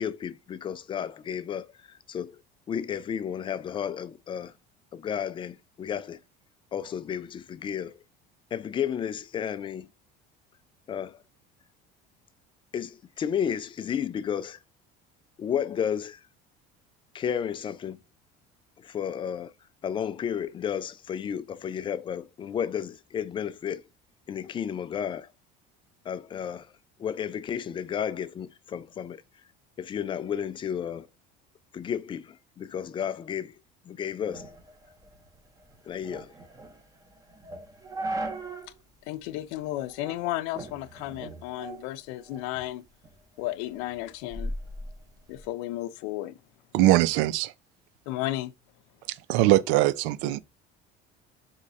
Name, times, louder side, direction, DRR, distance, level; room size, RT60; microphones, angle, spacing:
voice 1, 0.0-2.4 2.7-4.5 4.9-6.2 6.7-8.0 8.5-9.9 10.9-11.2 12.7-14.6 15.4-16.2 17.1-18.0 18.8-19.5 19.8-23.8 24.3-25.3 26.1-26.7 27.0-29.2 29.8-31.1 31.7-33.5 33.9-34.5 35.9-36.3, left 8 dB, 25° left, 0.3 m, -32 dB
sound 1, 34.3-38.8 39.1-39.2 39.8-40.2 40.6-42.6 43.0-45.5, right 1 dB, 20° right, 0.8 m, -39 dB
voice 2, 39.1-42.8 43.4-44.5 45.3-46.4 48.1-48.5, left 15 dB, 85° left, 0.5 m, -33 dB
voice 3, 46.7-47.5 49.1-50.4, right 15 dB, 75° right, 0.4 m, -22 dB
3.7 x 3.1 x 4.1 m
cardioid pair, 130°, 20 cm